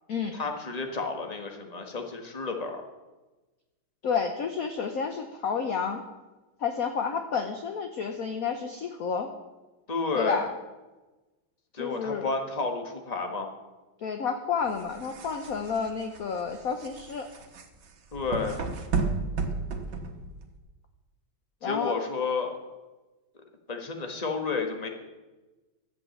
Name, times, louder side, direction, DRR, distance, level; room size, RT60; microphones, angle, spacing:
voice 1, 0.3-2.8 9.9-10.4 11.7-13.5 18.1-18.6 21.6-22.5 23.7-24.9, left 4 dB, 20° left, 3 dB, 1.4 m, -31 dB
voice 2, 4.0-6.0 6.6-9.3 10.1-10.5 11.8-12.3 14.0-17.3 21.6-22.0, left 6 dB, 55° left, 5 dB, 1.1 m, -30 dB
sound 1, 14.7-20.6, right 4 dB, 60° right, 1.8 m, -33 dB
12.5 x 8.3 x 7.9 m, 1.2 s
omnidirectional pair, 2.2 m